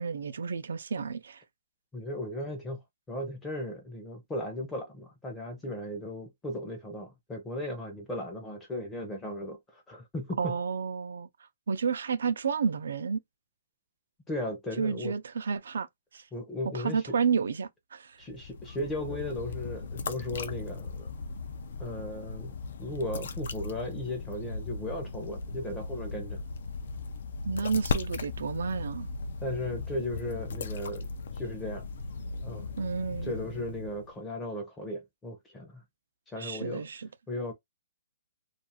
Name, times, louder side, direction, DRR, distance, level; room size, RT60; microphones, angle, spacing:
voice 1, 0.0-1.4 10.4-13.2 14.8-15.9 16.1-16.3 16.7-18.2 27.5-29.1 32.8-33.3 36.4-37.1, right 5 dB, 80° right, 0.4 m, -31 dB
voice 2, 1.9-2.8 3.1-10.5 14.3-15.2 16.3-17.0 18.2-21.1 21.8-26.4 29.4-31.1 31.4-31.8 32.4-32.7 33.2-35.8 36.3-36.9 37.3-37.5, left 1 dB, 5° left, 0.6 m, -36 dB
sound 1, 18.2-34.1, left 3 dB, 60° left, 0.4 m, -37 dB
2.4 x 2.3 x 2.8 m
hypercardioid pair, 175°, 0 cm